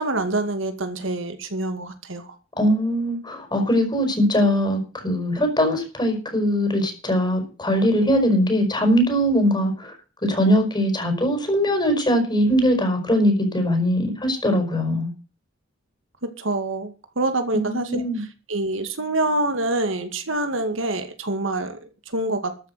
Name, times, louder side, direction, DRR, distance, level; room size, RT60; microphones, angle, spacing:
voice 1, 0.0-2.3 16.4-18.0 18.5-21.8 22.1-22.5, right 2 dB, 75° right, 7 dB, 2.2 m, -26 dB
voice 2, 2.6-9.9 10.2-15.1 17.5-18.2, equal, 25° left, 4 dB, 5.1 m, -21 dB
13.5 x 7.1 x 7.9 m, 0.35 s
head